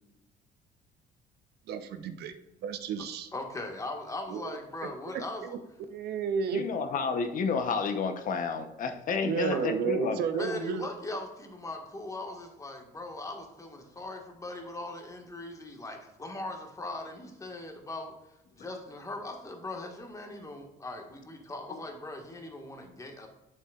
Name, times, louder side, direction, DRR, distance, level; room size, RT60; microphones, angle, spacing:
voice 1, 1.7-2.3 2.6-3.3 4.3-4.5 5.9-6.7 9.2-10.8, right 6 dB, 75° right, 9 dB, 0.8 m, -32 dB
voice 2, 3.3-5.5 9.5-9.6 10.4-23.3, left 2 dB, 20° left, 3 dB, 1.6 m, -40 dB
voice 3, 6.5-10.2, left 5 dB, 50° left, 7 dB, 0.9 m, -30 dB
8.3 x 7.1 x 2.4 m, 0.96 s
cardioid pair, 110°, 17 cm